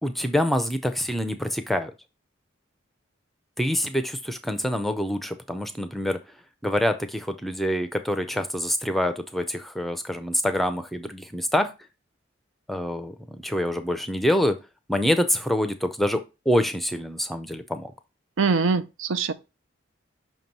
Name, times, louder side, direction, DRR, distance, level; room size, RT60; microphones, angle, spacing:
voice 1, 0.0-1.9 3.6-6.2 6.6-11.7 12.7-13.1 13.4-14.6 14.9-17.9, equal, ahead, 0.5 m, -26 dB
voice 2, 18.4-19.3, right 4 dB, 80° right, 0.6 m, -23 dB
5.8 x 3.1 x 5.3 m
head